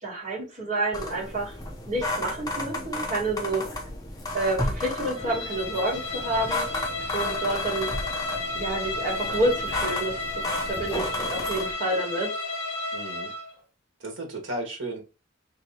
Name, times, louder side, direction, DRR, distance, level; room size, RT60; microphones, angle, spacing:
voice 1, 0.0-1.5 1.9-3.6 4.3-6.6 7.1-7.9 8.5-12.3, right 2 dB, 40° right, -4 dB, 1.7 m, -29 dB
sound 1, 0.9-11.7, left 2 dB, 20° left, 0.7 m, -33 dB
Bowed string instrument, 5.1-13.5, left 3 dB, 60° left, 1.2 m, -32 dB
voice 2, 12.9-13.3 14.0-15.0, right 1 dB, 65° right, 2 dB, 1.3 m, -34 dB
2.9 x 2.8 x 3.9 m, 0.30 s
head